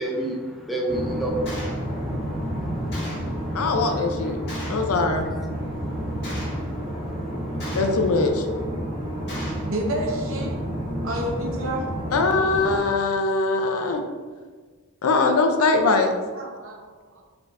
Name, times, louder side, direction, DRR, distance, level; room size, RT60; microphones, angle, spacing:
voice 1, 0.0-5.0 5.3-7.1 7.4-7.8, right 1 dB, ahead, -1 dB, 0.4 m, -34 dB
sound 1, 0.9-12.8, equal, 25° right, 1.4 m, -30 dB
Gunshot gunfire, 1.5-1.8 2.9-3.3 4.5-4.9 6.2-6.6 7.6-8.1 9.3-9.7, equal, 50° left, 1.5 m, -36 dB
voice 2, 3.5-4.4 4.7-5.3 7.7-8.4 12.1-14.0 15.0-16.1, left 3 dB, 75° left, 5 dB, 0.5 m, -21 dB
voice 3, 9.7-10.6 11.0-11.9 16.3-17.2, right 1 dB, 60° right, 0 dB, 0.7 m, -30 dB
4.3 x 3.4 x 2.5 m, 1.4 s
head